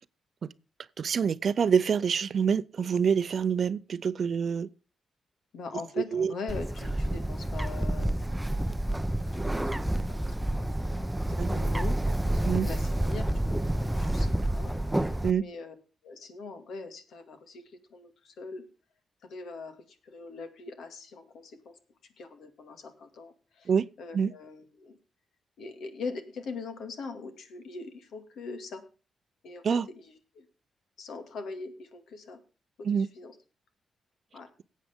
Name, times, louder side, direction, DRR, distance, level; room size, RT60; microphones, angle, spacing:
voice 1, 1.0-4.7 6.1-6.3 11.4-11.5 12.4-12.7 15.2-15.4 23.7-23.9 24.1-24.3 29.6-29.9 32.8-33.1, right 7 dB, 55° right, 0.5 m, -26 dB
voice 2, 5.5-8.2 9.3-12.0 12.3-15.7 16.0-18.6 19.3-21.8 22.2-23.7 24.0-25.0 25.6-28.8 29.4-29.6 30.0-30.5 31.0-32.4 32.8-33.4 34.3-34.5, left 4 dB, 80° left, 2.1 m, -42 dB
Bird, 6.5-15.3, right 1 dB, 10° right, 0.6 m, -29 dB
18.5 x 8.2 x 3.6 m
cardioid pair, 85°, 0 cm